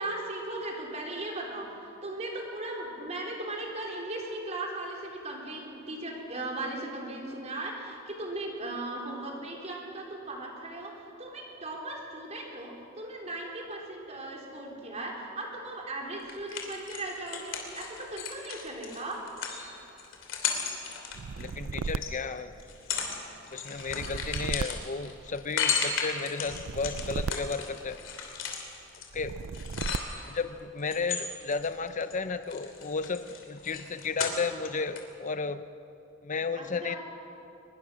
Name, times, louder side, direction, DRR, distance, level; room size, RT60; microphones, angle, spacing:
voice 1, 0.0-19.2 36.6-37.0, right 2 dB, 35° right, -1 dB, 3.9 m, -37 dB
sound 1, 16.3-22.1 22.6-23.2 23.4-30.4 30.9-32.1 32.4-34.7 35.0-35.1, left 6 dB, 65° left, 3.2 m, -35 dB
sound 2, 21.1-23.1 23.8-25.7 26.4-28.4 29.1-30.4, right 5 dB, 80° right, 0.5 m, -36 dB
voice 2, 21.4-22.6 23.5-28.0 29.1-29.3 30.3-35.6 36.2-37.0, left 4 dB, 40° left, 11 dB, 0.7 m, -33 dB
23.0 x 21.0 x 6.3 m, 2.8 s
head